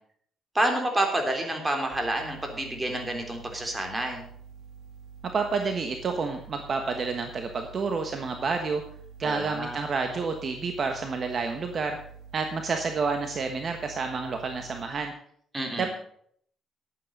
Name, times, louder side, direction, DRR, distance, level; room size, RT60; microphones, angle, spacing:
voice 1, 0.5-4.3 9.2-9.8 15.5-15.9, right 1 dB, 20° right, 3 dB, 3.4 m, -28 dB
sound 1, 1.9-14.9, right 6 dB, 75° right, 2.6 m, -48 dB
voice 2, 5.3-8.8 9.2-12.0 12.3-15.1 15.8-15.9, right 4 dB, 50° right, 5 dB, 1.3 m, -29 dB
11.0 x 9.4 x 5.3 m, 0.63 s
cardioid pair, 90°, 0 cm